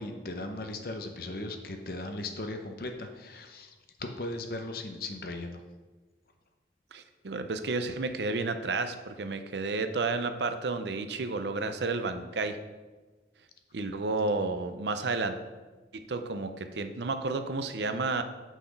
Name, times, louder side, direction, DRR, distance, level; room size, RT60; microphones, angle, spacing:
voice 1, 0.0-5.6, left 2 dB, 55° left, 5 dB, 0.8 m, -38 dB
voice 2, 6.9-12.6 13.7-15.4 15.9-18.2, right 3 dB, 75° right, 9 dB, 0.6 m, -31 dB
6.3 x 5.9 x 5.2 m, 1.3 s
head